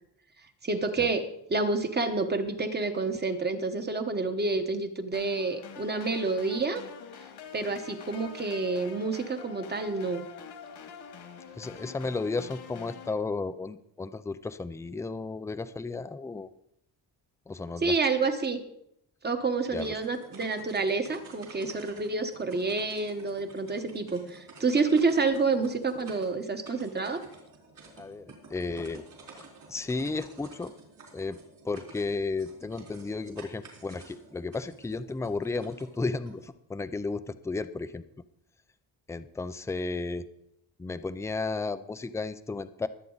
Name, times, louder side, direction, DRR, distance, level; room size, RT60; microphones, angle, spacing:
voice 1, 0.6-6.8 7.5-10.3 17.8-18.6 19.2-27.2, right 3 dB, 25° right, 7 dB, 1.2 m, -28 dB
sound 1, 5.1-13.1, left 7 dB, 80° left, 2.1 m, -45 dB
voice 2, 11.6-16.5 17.5-17.9 19.7-19.9 28.0-29.0 29.7-30.7 31.1-31.4 31.6-38.0 39.1-40.3 40.8-42.9, left 3 dB, 5° left, 12 dB, 0.4 m, -33 dB
sound 2, 19.5-36.5, right 3 dB, 55° right, 4.4 m, -51 dB
22.0 x 8.3 x 4.0 m, 0.79 s
cardioid pair, 135°, 40 cm